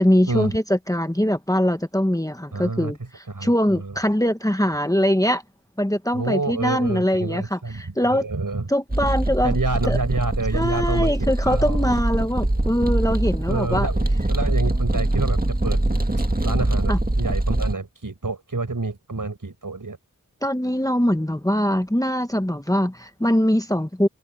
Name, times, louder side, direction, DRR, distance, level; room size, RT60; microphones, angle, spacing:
voice 1, 0.0-5.4 5.8-8.3 8.7-9.6 9.8-10.0 10.5-13.9 16.9-17.0 20.4-24.1, equal, 10° left, 1.4 m, -22 dB
voice 2, 2.5-2.9 3.3-4.0 6.1-8.7 9.4-11.9 13.5-14.0 14.3-16.0 16.4-20.0, right 3 dB, 85° right, 5.5 m, -28 dB
sound 1, 8.9-17.7, right 1 dB, 25° right, 2.0 m, -23 dB
open air
wide cardioid pair, 45°, 32 cm